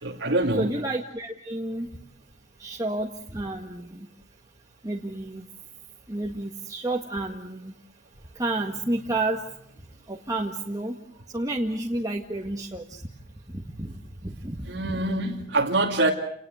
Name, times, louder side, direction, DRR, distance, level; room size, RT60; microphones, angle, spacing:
voice 1, 0.0-0.7 14.7-16.1, right 2 dB, 80° right, 2.5 m, -24 dB
voice 2, 0.6-1.9 2.6-4.1 4.8-5.4 6.1-7.7 8.4-9.4 10.1-11.0 11.3-13.0 13.5-14.0 14.2-14.6 14.8-15.0, right 2 dB, 20° right, 1.9 m, -30 dB
29.5 x 19.5 x 8.1 m
head